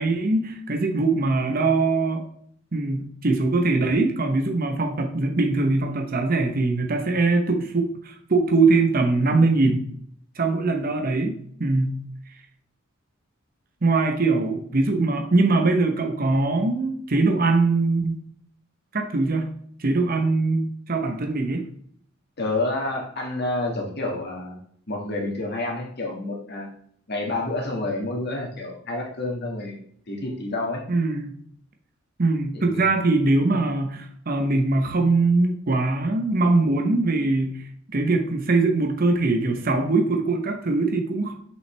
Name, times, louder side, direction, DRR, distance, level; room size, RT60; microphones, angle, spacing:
voice 1, 0.0-2.2 2.7-9.9 10.4-12.0 13.8-18.2 18.9-19.5 19.8-21.7 30.9-31.3 32.2-37.7 37.9-41.3, right 3 dB, 45° right, 4 dB, 0.9 m, -22 dB
voice 2, 22.4-24.6 24.9-26.7 27.1-29.8 30.1-30.8 32.5-32.9, left 2 dB, 55° left, 0 dB, 1.9 m, -29 dB
6.4 x 5.5 x 3.3 m, 0.63 s
head